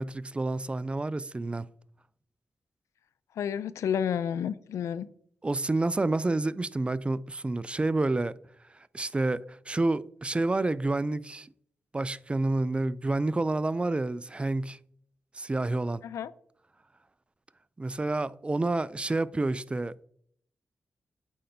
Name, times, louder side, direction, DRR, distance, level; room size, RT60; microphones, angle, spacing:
voice 1, 0.0-1.7 5.4-8.3 8.7-11.5 11.9-14.8 15.3-16.0 17.8-20.1, right 2 dB, 20° right, 0.3 m, -29 dB
voice 2, 3.3-5.1 16.0-16.3, left 8 dB, 85° left, 0.3 m, -30 dB
8.4 x 5.1 x 2.6 m
cardioid pair, 60°, 5 cm